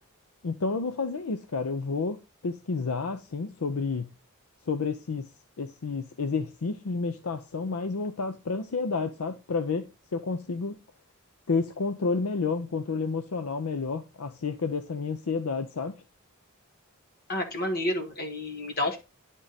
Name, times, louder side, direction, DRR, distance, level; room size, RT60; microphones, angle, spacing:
voice 1, 0.4-4.1 4.7-5.3 5.6-10.8 11.5-16.0, left 4 dB, 80° left, 0.6 m, -30 dB
voice 2, 17.3-19.0, left 1 dB, 45° left, 1.6 m, -30 dB
10.0 x 3.7 x 4.0 m
head